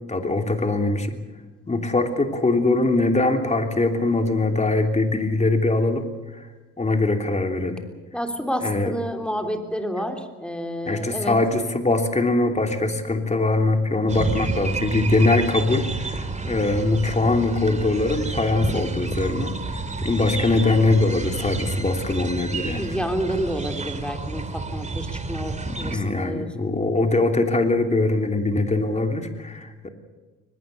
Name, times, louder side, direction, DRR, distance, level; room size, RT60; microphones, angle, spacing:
voice 1, 0.1-1.2 1.7-6.0 6.3-6.4 6.8-7.8 8.6-8.9 10.9-22.9 25.7-29.9, left 2 dB, 20° left, 5 dB, 3.1 m, -22 dB
voice 2, 8.1-11.4 22.7-26.5, equal, 5° left, 4 dB, 3.3 m, -29 dB
sound 1, 14.1-26.0, right 3 dB, 25° right, 2.5 m, -30 dB
23.0 x 21.0 x 6.8 m, 1.3 s
cardioid pair, 90°, 30 cm